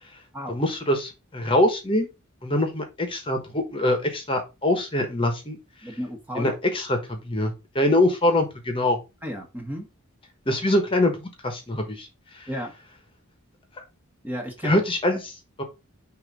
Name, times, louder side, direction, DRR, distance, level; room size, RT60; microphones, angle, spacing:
voice 1, 0.5-2.1 2.4-5.6 5.8-6.0 6.3-9.0 10.5-12.6 13.8-13.9 14.6-15.6, left 1 dB, 25° left, 1.2 m, -24 dB
voice 2, 5.8-6.5 9.2-9.9 12.5-12.7 14.2-14.8, equal, 10° right, 1.2 m, -33 dB
6.5 x 2.8 x 5.3 m
head